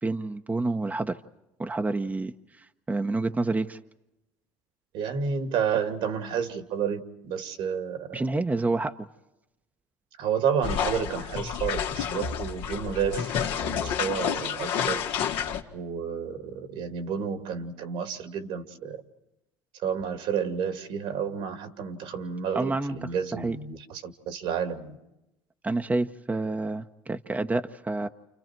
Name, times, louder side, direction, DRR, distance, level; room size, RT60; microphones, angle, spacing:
voice 1, 0.0-1.2 1.6-3.8 8.1-9.1 22.5-23.0 23.3-23.6 25.6-28.1, right 2 dB, 15° right, 6 dB, 1.0 m, -28 dB
voice 2, 4.9-8.2 10.2-15.0 15.7-19.0 19.8-25.0, right 7 dB, 75° right, 7 dB, 2.6 m, -30 dB
sound 1, 10.6-15.6, left 8 dB, 75° left, 2.1 m, -29 dB
29.5 x 29.0 x 4.6 m, 0.91 s
supercardioid pair, 80°, 9 cm